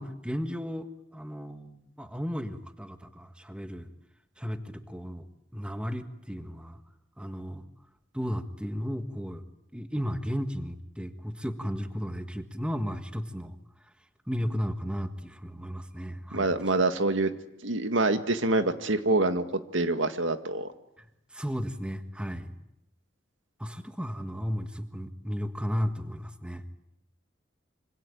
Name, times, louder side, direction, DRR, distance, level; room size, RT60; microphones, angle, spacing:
voice 1, 0.0-3.9 4.4-5.3 5.5-6.8 7.2-7.6 8.1-9.4 9.7-13.6 14.3-16.7 21.0-21.1 21.3-22.5 23.6-26.7, equal, 5° right, 8 dB, 1.6 m, -34 dB
voice 2, 16.3-17.3 17.6-19.4 19.7-20.7, right 2 dB, 80° right, 9 dB, 2.0 m, -26 dB
26.5 x 25.5 x 8.6 m, 0.82 s
head